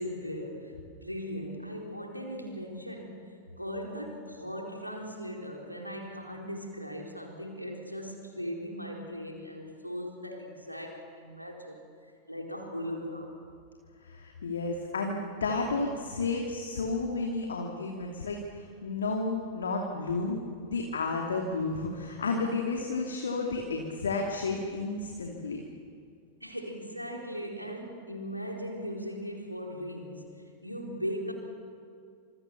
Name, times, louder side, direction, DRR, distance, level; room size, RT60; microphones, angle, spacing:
voice 1, 0.0-11.8 12.2-13.3 26.4-30.3 30.6-31.3, equal, 90° left, 1 dB, 4.3 m, -38 dB
voice 2, 14.0-25.6, left 3 dB, 70° left, 1 dB, 2.8 m, -32 dB
28.5 x 26.5 x 7.1 m, 2.3 s
figure-of-eight pair, 90°, 0 cm